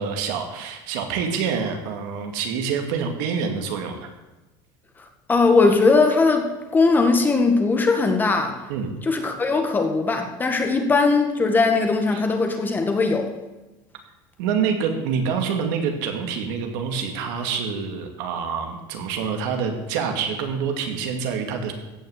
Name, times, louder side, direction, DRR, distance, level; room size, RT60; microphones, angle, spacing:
voice 1, 0.0-4.1 8.7-9.0 12.1-12.2 14.4-21.7, right 6 dB, 80° right, 4 dB, 2.5 m, -26 dB
voice 2, 5.3-8.6 9.0-13.3, left 3 dB, 20° left, 4 dB, 1.8 m, -19 dB
15.5 x 6.1 x 8.3 m, 1.1 s
cardioid pair, 135°, 10 cm